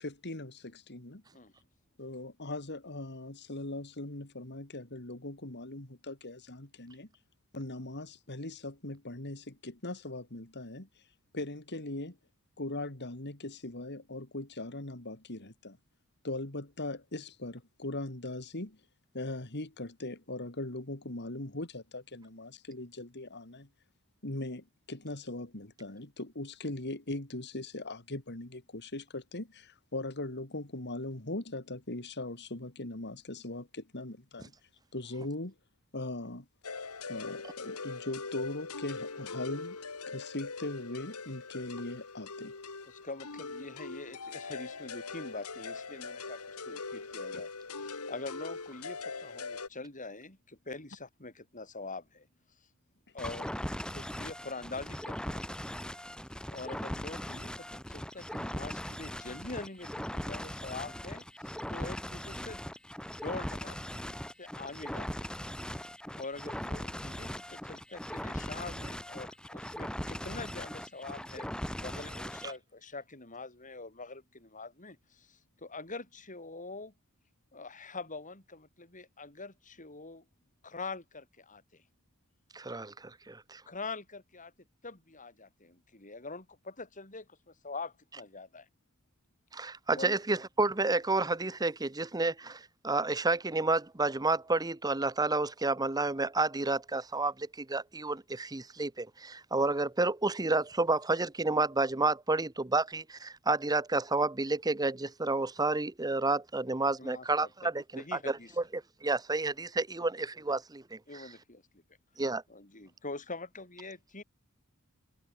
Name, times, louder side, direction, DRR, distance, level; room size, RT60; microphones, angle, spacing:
voice 1, 0.0-1.2 2.0-7.1 7.5-10.9 11.3-12.2 12.6-15.8 16.2-18.8 19.1-23.7 24.2-34.5 34.9-35.5 35.9-36.5 37.1-39.8 40.1-42.5 47.3-47.4, left 2 dB, 50° left, 3.0 m, -40 dB
sound 1, 36.6-49.7, left 4 dB, 85° left, 2.1 m, -42 dB
voice 2, 42.9-47.5 47.8-52.3 53.1-55.4 56.5-62.7 63.2-65.3 66.1-76.9 77.5-80.2 80.6-81.8 83.7-84.5 84.8-88.7 89.9-90.1 107.0-107.3 107.6-107.7 108.0-108.6 110.0-110.1 111.1-111.6 112.5-114.2, left 3 dB, 35° left, 5.9 m, -44 dB
sound 2, 53.2-72.6, equal, 5° left, 2.2 m, -39 dB
voice 3, 82.5-83.6 89.5-111.2 112.2-112.4, right 3 dB, 15° right, 1.0 m, -30 dB
head